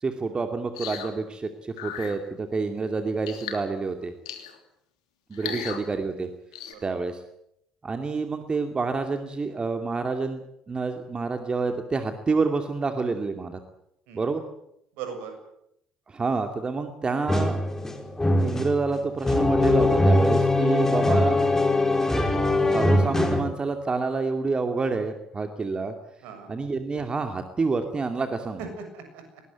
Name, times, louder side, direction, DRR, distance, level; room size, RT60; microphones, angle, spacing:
voice 1, 0.0-4.1 5.3-6.3 6.8-7.2 7.8-10.4 10.7-13.6 14.1-14.4 16.1-17.6 18.4-21.4 22.7-25.9 26.5-28.6, right 4 dB, 30° right, 6 dB, 2.6 m, -28 dB
sound 1, 0.7-1.1 1.8-2.1 3.3-3.6 4.2-4.6 5.3-5.8 6.5-6.7, left 10 dB, 75° left, 3.1 m, -36 dB
voice 2, 14.9-15.3 26.2-26.5 28.6-29.4, right 5 dB, 65° right, 6 dB, 7.1 m, -39 dB
sound 2, 17.3-23.4, left 2 dB, 15° left, 5.1 m, -22 dB
21.5 x 20.0 x 9.5 m, 0.77 s
figure-of-eight pair, 55°, 3 cm